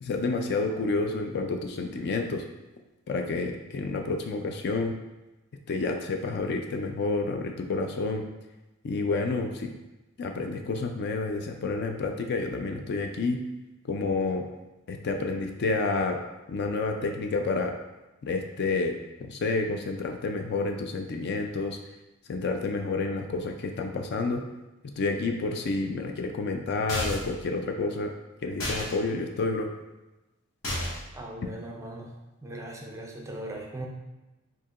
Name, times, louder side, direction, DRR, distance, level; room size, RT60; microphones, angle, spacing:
voice 1, 0.0-2.4 3.1-4.9 5.7-8.2 8.8-9.7 10.2-13.4 13.8-14.4 14.9-16.2 16.5-17.7 18.2-21.8 22.3-24.4 25.0-28.1 28.4-29.7, left 3 dB, 55° left, 4 dB, 0.4 m, -29 dB
sound 1, 26.9-27.4 28.6-28.9 30.6-31.1, left 1 dB, 70° left, 0.9 m, -31 dB
voice 2, 31.1-32.1 32.4-33.9, right 1 dB, 15° right, 0 dB, 0.4 m, -39 dB
4.5 x 2.8 x 2.4 m, 1.0 s
head